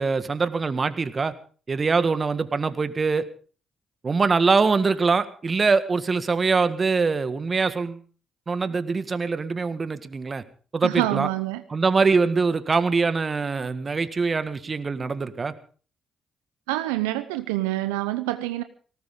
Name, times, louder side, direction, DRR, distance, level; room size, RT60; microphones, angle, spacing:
voice 1, 0.0-1.3 1.7-3.2 4.0-8.0 8.5-10.4 10.7-11.3 11.7-15.5, right 4 dB, 40° right, 12 dB, 1.8 m, -23 dB
voice 2, 10.8-11.6 16.7-18.6, right 16 dB, 90° right, 10 dB, 0.7 m, -26 dB
18.5 x 18.5 x 3.8 m, 0.40 s
hypercardioid pair, 45°, 0 cm